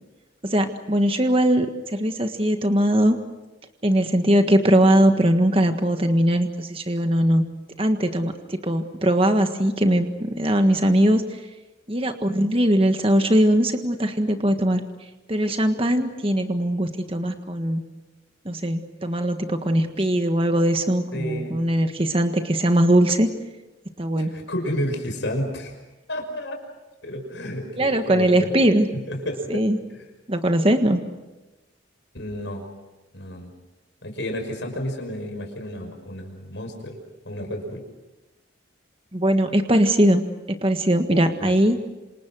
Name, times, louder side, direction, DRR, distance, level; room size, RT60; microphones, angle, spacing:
voice 1, 0.4-3.2 3.8-7.4 7.8-11.2 11.9-14.8 15.3-17.8 18.4-23.3 24.0-24.3 27.8-28.9 29.5-29.8 30.3-31.0 39.1-40.2 40.5-41.8, right 1 dB, 30° right, 6 dB, 1.6 m, -20 dB
voice 2, 21.1-21.6 24.2-25.7 26.1-26.6 27.0-28.6 29.1-29.6 29.9-30.1 32.1-32.6 33.1-33.5 34.0-36.9 37.2-37.8 41.4-41.6, equal, 70° left, 4 dB, 5.8 m, -31 dB
27.5 x 27.0 x 6.3 m, 1.1 s
head